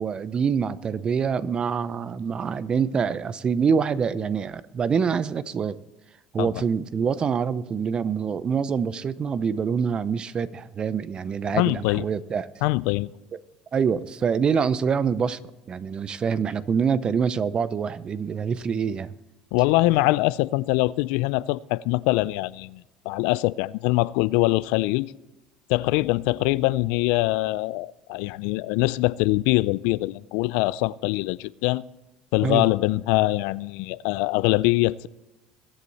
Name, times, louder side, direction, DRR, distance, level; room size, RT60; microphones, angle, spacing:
voice 1, 0.0-5.8 6.3-12.5 13.3-13.4 13.7-15.4 15.7-19.1 32.4-32.7, right 6 dB, 35° right, 0.7 m, -25 dB
voice 2, 11.5-12.0 12.6-13.1 19.5-25.1 25.7-31.8 32.3-35.1, left 20 dB, 75° left, 0.4 m, -23 dB
22.0 x 8.3 x 4.2 m
supercardioid pair, 85°, 3 cm